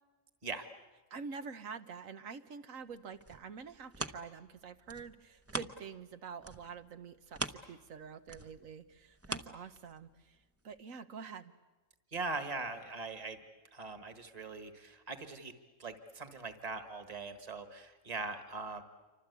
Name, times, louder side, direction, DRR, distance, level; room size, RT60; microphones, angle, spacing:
voice 1, 1.1-11.5, right 5 dB, 85° right, 9 dB, 1.5 m, -47 dB
sound 1, 2.9-6.1 6.4-10.2 10.7-10.8, right 2 dB, 15° right, 0.7 m, -43 dB
voice 2, 12.1-13.4 13.7-15.5 15.8-18.8, right 3 dB, 30° right, 8 dB, 1.7 m, -41 dB
28.0 x 25.0 x 8.2 m, 1.2 s
omnidirectional pair, 1.4 m